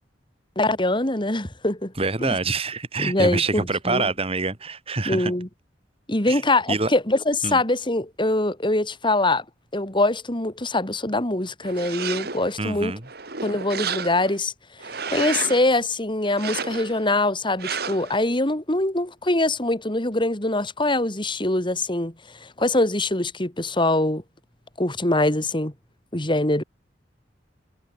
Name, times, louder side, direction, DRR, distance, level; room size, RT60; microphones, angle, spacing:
voice 1, 0.6-1.9 2.2-2.4 3.0-4.1 5.1-5.5 6.1-9.4 9.7-13.0 13.4-14.5 15.1-22.1 22.4-24.2 24.8-25.7 26.1-26.6, left 2 dB, 25° left, 3.9 m, -23 dB
voice 2, 2.0-5.3 6.3-6.4 6.7-6.9 7.4-7.6 12.6-13.0, right 3 dB, 35° right, 2.0 m, -26 dB
sound 1, 11.6-12.5 13.0-14.4 14.8-15.7 16.3-17.1 17.6-18.2, right 6 dB, 60° right, 3.3 m, -31 dB
head